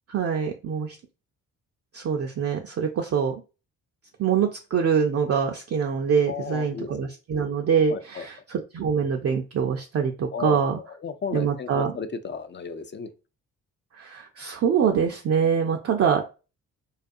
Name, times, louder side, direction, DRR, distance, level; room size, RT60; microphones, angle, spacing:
voice 1, 0.1-1.0 1.9-3.4 4.2-10.8 11.3-11.9 13.9-16.2, right 7 dB, 40° right, 0.5 m, -24 dB
voice 2, 6.3-7.2 7.9-8.3 10.3-13.1, left 6 dB, 30° left, 0.4 m, -34 dB
2.4 x 2.2 x 2.6 m
hypercardioid pair, 40°, 38 cm